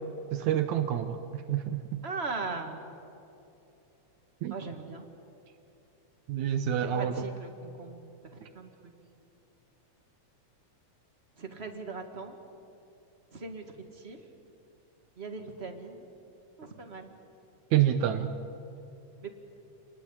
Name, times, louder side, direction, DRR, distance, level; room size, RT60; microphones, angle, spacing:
voice 1, 0.3-1.8 4.4-4.6 6.3-7.3 17.7-18.3, right 10 dB, 75° right, 8 dB, 2.2 m, -28 dB
voice 2, 2.0-2.8 4.5-5.0 6.9-8.0 8.3-8.7 11.4-12.3 13.3-13.6 14.0-14.2 15.2-16.0 16.6-17.1 19.2-19.3, right 4 dB, 25° right, 5 dB, 1.5 m, -39 dB
28.5 x 20.0 x 8.7 m, 2.8 s
omnidirectional pair, 3.5 m